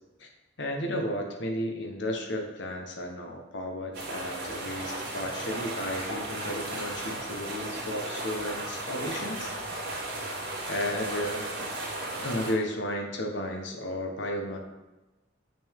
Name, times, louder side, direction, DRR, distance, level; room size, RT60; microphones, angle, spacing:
voice 1, 0.6-9.5 10.7-11.4 12.2-14.6, left 1 dB, 65° left, 2 dB, 1.2 m, -33 dB
sound 1, 3.9-12.5, right 2 dB, 60° right, 2.3 m, -35 dB
7.1 x 6.1 x 3.6 m, 1.1 s
head